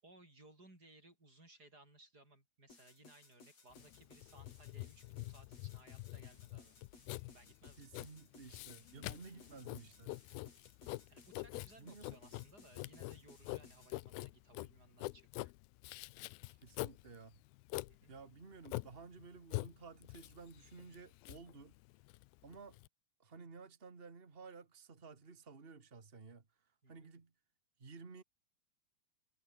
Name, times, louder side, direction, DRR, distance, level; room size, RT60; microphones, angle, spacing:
voice 1, 0.0-6.8 7.3-7.9 9.4-9.6 11.1-15.5 17.9-18.1 26.8-27.1, right 2 dB, 20° right, 8.5 m, -62 dB
sound 1, 2.7-14.0, left 3 dB, 40° left, 7.1 m, -62 dB
Writing, 3.7-22.9, left 21 dB, 85° left, 2.4 m, -46 dB
voice 2, 7.8-10.1 11.8-12.2 16.5-17.4 18.1-21.7 22.4-22.8 23.2-27.3 27.8-28.2, right 4 dB, 75° right, 0.5 m, -54 dB
omnidirectional pair, 4.6 m